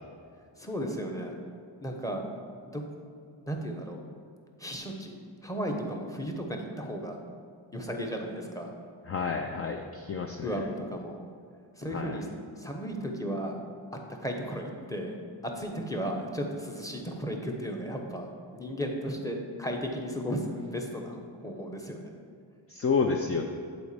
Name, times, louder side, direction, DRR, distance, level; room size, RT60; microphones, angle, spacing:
voice 1, 0.6-1.3 1.8-2.8 3.5-4.0 4.6-7.2 7.7-8.7 10.4-11.2 11.8-12.3 12.6-13.6 14.2-15.2 15.4-18.3 18.5-22.1, equal, 5° left, 1 dB, 1.1 m, -35 dB
voice 2, 9.1-10.6 11.9-12.2 22.7-23.4, left 5 dB, 30° left, 3 dB, 0.5 m, -29 dB
8.2 x 4.1 x 6.9 m, 2.3 s
cardioid pair, 95°, 47 cm